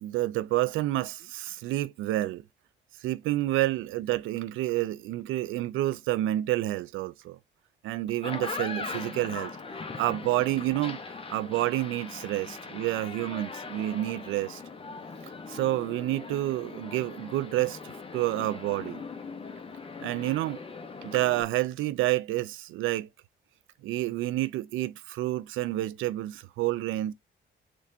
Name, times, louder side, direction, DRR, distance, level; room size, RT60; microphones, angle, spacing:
voice 1, 0.0-2.4 3.0-7.4 7.8-9.5 10.0-11.0 11.3-14.6 15.5-19.1 20.0-20.6 21.0-23.1 23.8-27.1, right 15 dB, 85° right, 0.4 m, -29 dB
sound 1, 8.1-21.4, left 4 dB, 25° left, 1.0 m, -40 dB
5.9 x 3.3 x 2.8 m
cardioid pair, 90°, 20 cm